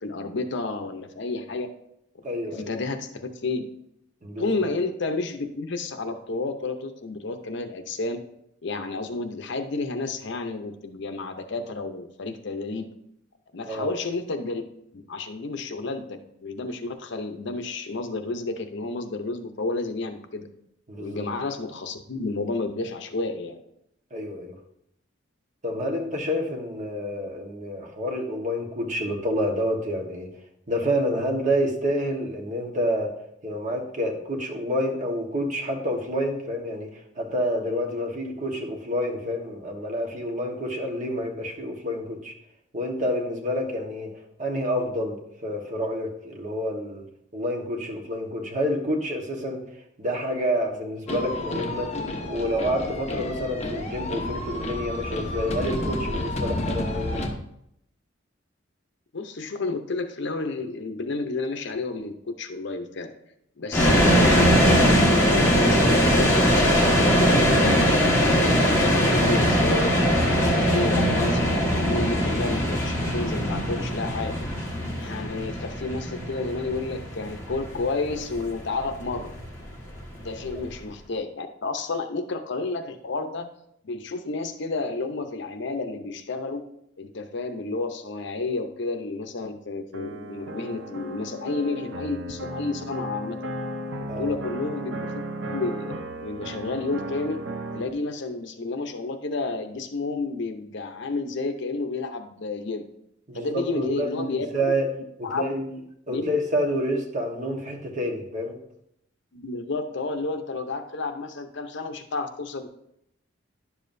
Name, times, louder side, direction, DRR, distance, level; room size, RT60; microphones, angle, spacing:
voice 1, 0.0-1.7 2.4-3.7 4.4-8.2 8.6-12.9 13.5-14.6 14.9-20.5 21.0-23.6 59.1-63.1 63.6-64.8 65.1-69.9 70.3-74.4 75.0-79.4 80.2-83.5 83.8-86.6 87.0-93.4 94.1-97.4 97.7-102.8 103.3-104.7 105.2-105.5 106.1-106.3 109.3-112.7, left 3 dB, 65° left, 8 dB, 0.7 m, -31 dB
voice 2, 2.2-2.7 4.2-4.5 13.6-13.9 20.9-21.2 24.1-24.5 25.6-30.3 30.7-33.1 33.4-42.3 42.7-44.1 44.4-47.0 47.3-49.6 50.0-51.9 52.3-57.2 70.8-70.9 94.1-94.3 103.3-104.9 105.2-105.8 106.1-108.6, equal, 40° right, 1 dB, 1.3 m, -28 dB
sound 1, 51.1-57.3, left 1 dB, 35° left, 1.0 m, -30 dB
sound 2, 63.7-80.7, equal, 15° left, 1.6 m, -21 dB
sound 3, 89.9-97.9, right 1 dB, 75° right, 0.7 m, -35 dB
10.5 x 7.1 x 2.6 m, 0.76 s
head